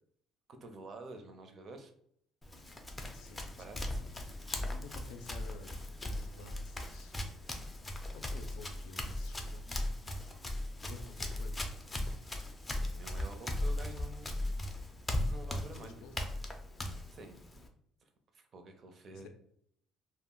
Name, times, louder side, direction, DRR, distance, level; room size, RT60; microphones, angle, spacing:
voice 1, 0.5-1.9 3.6-4.0 12.9-14.4 15.3-16.1 17.1-17.4 18.3-19.3, right 2 dB, 40° right, 6 dB, 0.5 m, -49 dB
Run, 2.4-17.7, left 1 dB, 15° left, 0.4 m, -38 dB
voice 2, 3.1-3.7 4.7-7.2 7.5-7.7 8.1-10.1 10.8-11.7 15.7-16.3 19.1-19.3, left 3 dB, 90° left, 6 dB, 0.4 m, -52 dB
2.2 x 2.0 x 3.6 m, 0.68 s
cardioid pair, 125°, 0 cm